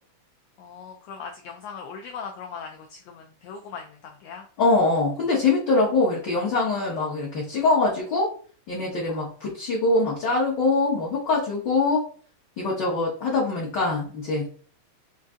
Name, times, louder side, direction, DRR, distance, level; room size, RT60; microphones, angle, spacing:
voice 1, 0.6-4.5 9.1-9.2, left 6 dB, 90° left, 2 dB, 1.4 m, -39 dB
voice 2, 4.6-8.3 8.7-12.0 12.6-14.5, left 3 dB, 70° left, -5 dB, 1.0 m, -23 dB
5.4 x 2.6 x 3.5 m, 0.43 s
omnidirectional pair, 3.6 m